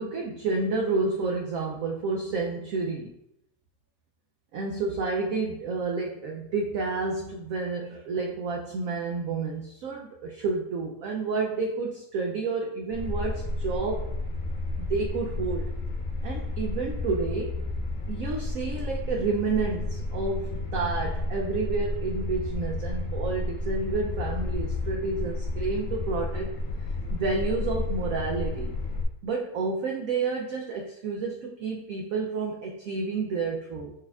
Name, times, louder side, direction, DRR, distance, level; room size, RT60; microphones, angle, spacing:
voice 1, 0.0-3.1 4.5-14.1 14.8-15.7 16.2-17.6 18.1-26.5 27.1-28.8 29.2-33.9, right 4 dB, 85° right, 0 dB, 0.7 m, -30 dB
sound 1, 12.9-29.0, left 2 dB, 60° left, 0.8 m, -31 dB
5.0 x 4.2 x 2.3 m, 0.79 s
omnidirectional pair, 2.0 m